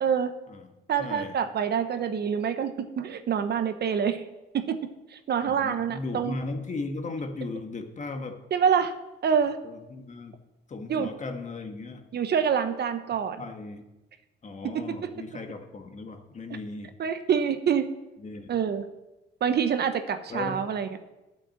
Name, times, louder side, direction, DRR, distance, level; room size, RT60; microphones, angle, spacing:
voice 1, 0.0-0.3 0.9-4.2 4.5-4.8 5.1-6.4 8.5-8.9 9.2-9.6 10.9-11.1 12.1-13.4 14.6-15.1 17.0-17.9 18.5-18.9 19.4-20.9, right 7 dB, 55° right, 10 dB, 0.9 m, -26 dB
voice 2, 1.0-1.3 5.4-8.4 9.6-10.4 10.7-12.0 13.4-13.8 14.4-16.9 18.2-18.5 20.3-20.6, left 3 dB, 35° left, 5 dB, 1.6 m, -36 dB
9.1 x 8.6 x 7.2 m, 1.0 s
cardioid pair, 90°, 20 cm